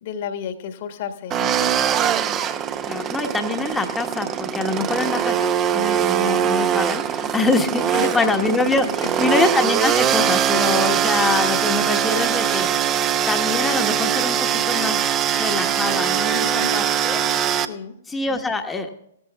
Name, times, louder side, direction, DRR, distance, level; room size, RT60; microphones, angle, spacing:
voice 1, 0.0-1.8 4.8-5.2 7.9-8.3 9.0-9.3 16.3-16.7 17.6-18.0, left 7 dB, 50° left, 6 dB, 1.5 m, -32 dB
sound 1, 1.3-17.7, right 9 dB, 25° right, 0.7 m, -22 dB
voice 2, 2.9-5.4 5.7-12.9 13.3-15.0 15.3-17.5 18.1-18.9, left 3 dB, 10° left, 5 dB, 1.2 m, -24 dB
17.0 x 13.5 x 2.3 m, 0.74 s
figure-of-eight pair, 115°, 0 cm